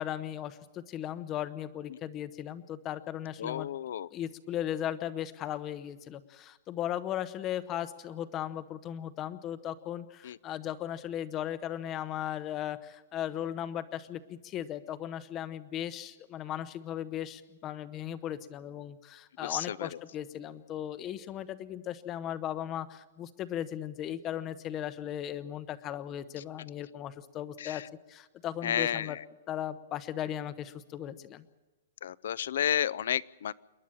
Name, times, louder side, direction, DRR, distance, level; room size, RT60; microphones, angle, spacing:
voice 1, 0.0-3.7 4.1-27.8 28.1-29.2 29.5-31.4, left 11 dB, 20° left, 13 dB, 0.8 m, -37 dB
voice 2, 3.4-4.1 10.2-10.4 19.4-19.9 27.6-27.8 28.6-29.2 32.0-33.5, left 9 dB, 60° left, 20 dB, 0.5 m, -31 dB
27.5 x 11.0 x 8.8 m, 1.2 s
hypercardioid pair, 175°, 0 cm